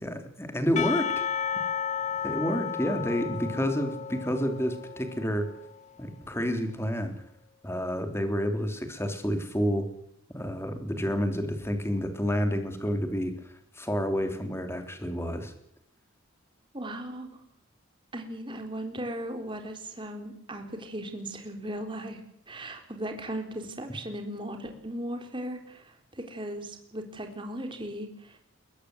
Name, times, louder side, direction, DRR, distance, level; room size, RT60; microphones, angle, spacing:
voice 1, 0.0-1.2 2.2-5.5 6.0-7.2 7.6-9.9 10.3-15.5, equal, 10° left, 6 dB, 3.3 m, -29 dB
Percussion / Church bell, 0.8-5.8, left 8 dB, 35° left, 0.8 m, -33 dB
voice 2, 16.7-17.3 18.1-22.2 22.5-28.4, right 1 dB, 25° right, 4 dB, 3.9 m, -37 dB
23.0 x 18.5 x 7.9 m, 0.72 s
head